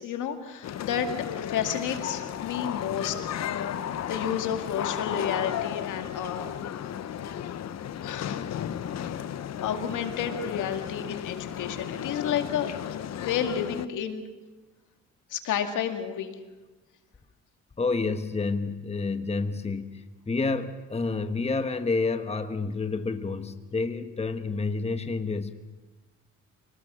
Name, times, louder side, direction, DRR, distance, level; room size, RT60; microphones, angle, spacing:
voice 1, 0.0-3.8 4.1-6.6 8.0-8.6 9.3-12.7 13.2-14.2 15.3-16.3, left 8 dB, 80° left, 6 dB, 2.2 m, -31 dB
sound 1, 0.6-13.9, left 10 dB, 60° left, 0.9 m, -34 dB
voice 2, 17.8-25.6, left 3 dB, 20° left, 9 dB, 1.2 m, -29 dB
25.0 x 19.5 x 6.3 m, 1.2 s
cardioid pair, 90°, 30 cm